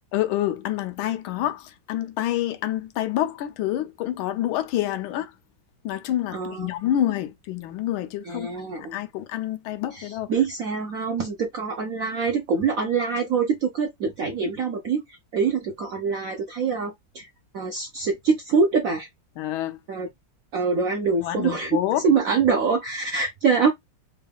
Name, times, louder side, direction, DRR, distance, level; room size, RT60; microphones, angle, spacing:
voice 1, 0.1-5.3 5.8-10.3 19.4-19.8 21.2-22.1, left 12 dB, 85° left, 1.4 m, -27 dB
voice 2, 6.3-6.7 8.3-8.9 9.9-17.3 17.5-19.1 19.9-20.1 20.5-21.7 22.0-23.7, right 5 dB, 75° right, 0.7 m, -24 dB
3.7 x 2.3 x 3.4 m
omnidirectional pair, 2.2 m